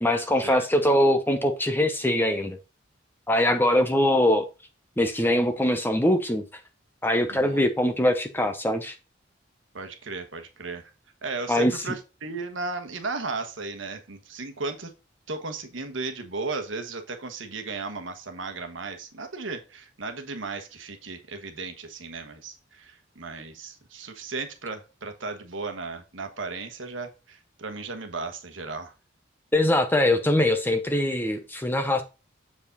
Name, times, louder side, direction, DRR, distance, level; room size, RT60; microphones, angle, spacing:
voice 1, 0.0-2.6 3.3-4.5 5.0-6.4 7.0-8.9 11.5-11.7 29.5-32.0, left 1 dB, 10° left, 0.7 m, -22 dB
voice 2, 7.3-7.6 9.7-10.8 11.2-14.9 15.3-28.9, right 3 dB, 70° right, 1.3 m, -35 dB
7.2 x 4.9 x 4.0 m
head